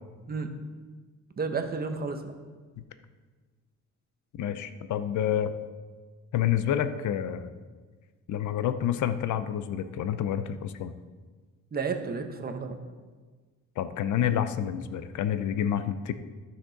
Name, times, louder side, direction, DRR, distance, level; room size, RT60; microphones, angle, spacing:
voice 1, 1.4-2.3 11.7-12.8, right 4 dB, 30° right, 6 dB, 0.9 m, -31 dB
voice 2, 4.4-5.5 6.3-7.5 8.3-10.9 13.8-16.1, left 10 dB, 65° left, 11 dB, 0.6 m, -28 dB
13.0 x 6.1 x 4.0 m, 1.4 s
cardioid pair, 145°, 31 cm